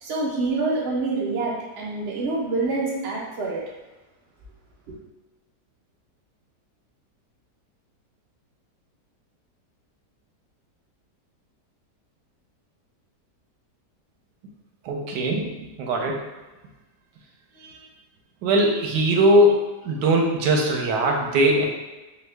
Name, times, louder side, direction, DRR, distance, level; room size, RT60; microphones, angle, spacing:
voice 1, 0.0-3.6 4.9-5.0, right 3 dB, 45° right, -4 dB, 0.9 m, -26 dB
voice 2, 14.9-16.2 17.6-17.7 18.4-21.7, right 1 dB, 90° right, 1 dB, 1.3 m, -20 dB
4.6 x 2.3 x 3.3 m, 1.1 s
omnidirectional pair, 1.8 m